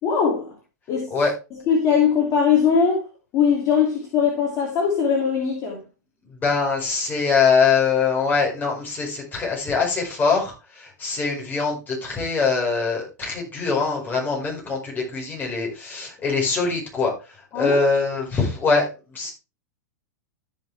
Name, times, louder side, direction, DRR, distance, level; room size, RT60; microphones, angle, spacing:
voice 1, 0.0-0.5 0.9-1.1 1.5-3.1 3.3-5.8 17.5-17.8, left 6 dB, 35° left, 2.8 m, -20 dB
voice 2, 6.3-19.3, left 4 dB, 20° left, 5.1 m, -23 dB
14.0 x 5.9 x 3.4 m
hypercardioid pair, 115°, 9 cm